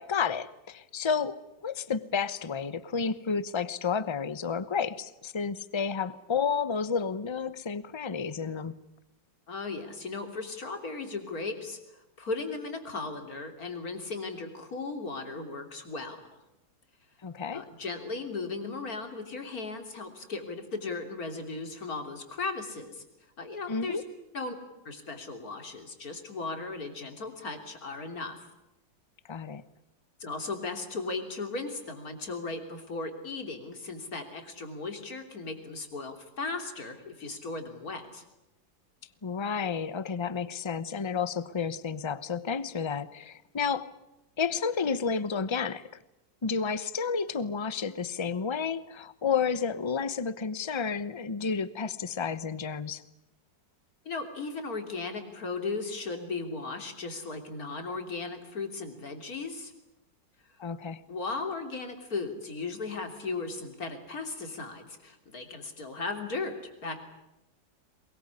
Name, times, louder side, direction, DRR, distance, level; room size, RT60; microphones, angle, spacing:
voice 1, 0.0-8.8 17.2-17.6 23.7-24.0 29.3-29.6 39.2-43.9 44.4-45.9 46.4-53.0 60.6-61.0, left 6 dB, 30° left, 16 dB, 0.5 m, -31 dB
voice 2, 9.5-11.8 12.2-16.2 17.5-23.0 23.4-24.0 24.3-24.6 24.9-28.3 30.2-38.2 54.1-59.7 61.1-67.0, left 3 dB, 50° left, 6 dB, 3.6 m, -36 dB
23.0 x 21.5 x 9.7 m, 0.91 s
omnidirectional pair, 2.0 m